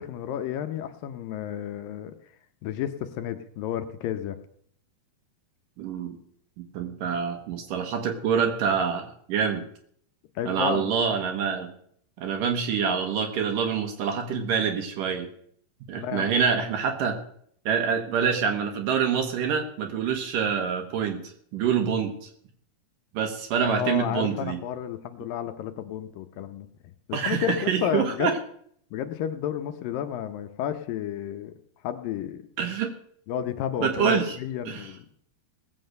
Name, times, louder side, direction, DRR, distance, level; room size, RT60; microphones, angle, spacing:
voice 1, 0.0-2.1 2.6-4.4 10.4-10.9 16.0-16.4 23.6-26.7 27.1-28.3 28.9-31.5 31.8-32.4 33.3-35.1, left 10 dB, 75° left, 9 dB, 2.3 m, -31 dB
voice 2, 5.8-6.2 6.7-9.6 10.5-11.7 12.2-15.3 15.9-17.2 17.7-21.2 21.5-22.3 23.1-24.6 27.1-28.3 32.6-32.9 33.8-34.4 34.7-34.9, right 7 dB, 70° right, 5 dB, 2.6 m, -26 dB
18.5 x 7.7 x 6.5 m, 0.65 s
omnidirectional pair, 4.5 m